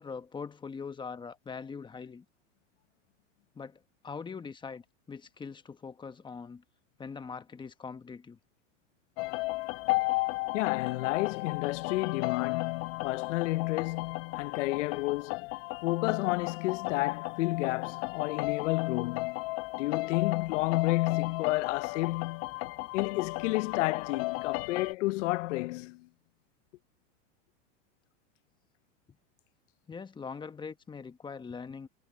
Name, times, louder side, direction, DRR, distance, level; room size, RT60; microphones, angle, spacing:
voice 1, 0.0-2.2 3.5-6.6 7.0-8.4 29.9-31.9, left 5 dB, 15° left, 1.2 m, -42 dB
sound 1, 9.2-24.9, left 24 dB, 50° left, 0.8 m, -35 dB
voice 2, 10.5-15.5 15.8-19.4 19.8-22.5 22.9-26.1, left 20 dB, 80° left, 0.6 m, -31 dB
supercardioid pair, 135°, 36 cm